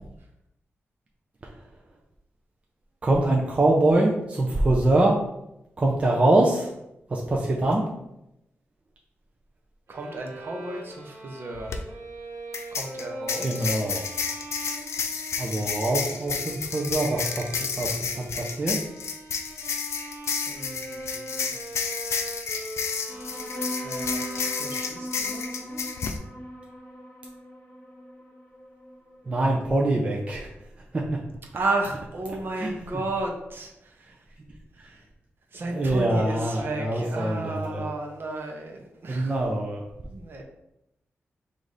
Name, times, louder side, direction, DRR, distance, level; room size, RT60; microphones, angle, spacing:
voice 1, 3.0-5.2 5.8-6.7 7.1-7.8 13.4-14.0 15.4-18.8 29.3-30.5 30.9-31.2 32.6-32.7 35.7-37.8 39.1-39.8, right 2 dB, 25° right, -1 dB, 0.5 m, -24 dB
voice 2, 9.9-11.8 12.7-13.8 20.5-21.5 23.8-24.2 24.6-25.8 31.5-34.1 34.8-35.1 35.5-39.4 40.1-40.4, right 2 dB, 50° right, 2 dB, 0.8 m, -33 dB
sound 1, 9.9-25.0, right 2 dB, 85° right, 1.1 m, -42 dB
sound 2, 11.5-11.8 12.5-26.2, left 6 dB, 85° left, 0.4 m, -31 dB
sound 3, 23.1-30.0, equal, 45° left, 1.0 m, -38 dB
5.0 x 2.5 x 3.9 m, 0.85 s
wide cardioid pair, 160°, 5 cm